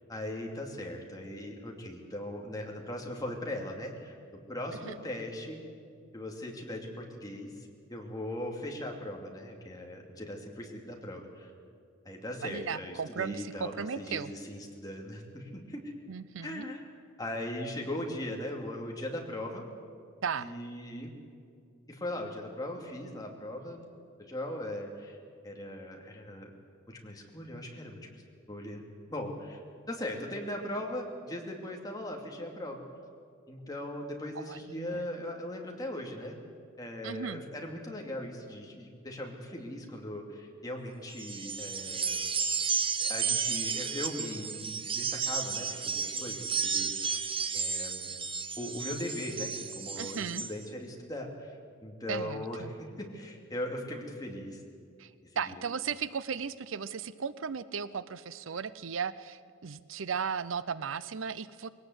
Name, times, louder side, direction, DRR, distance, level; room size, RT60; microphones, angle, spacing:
voice 1, 0.1-5.6 6.1-11.5 12.0-15.8 16.4-16.8 17.2-19.6 20.4-21.1 21.9-23.8 24.2-25.2 25.4-26.5 26.9-28.2 28.5-29.6 29.9-32.9 33.5-36.4 36.8-42.3 43.0-47.2 47.5-48.1 48.6-51.6 51.8-54.6 55.5-55.6, left 1 dB, 20° left, 0 dB, 2.7 m, -39 dB
voice 2, 12.4-14.3 16.1-16.7 20.2-20.5 34.4-35.1 37.0-37.4 50.0-50.4 52.1-52.7 55.0-55.1 55.4-61.7, right 6 dB, 70° right, 16 dB, 0.6 m, -36 dB
sound 1, 41.1-50.5, right 6 dB, 25° right, 1.0 m, -33 dB
21.5 x 18.0 x 8.0 m, 2.3 s
head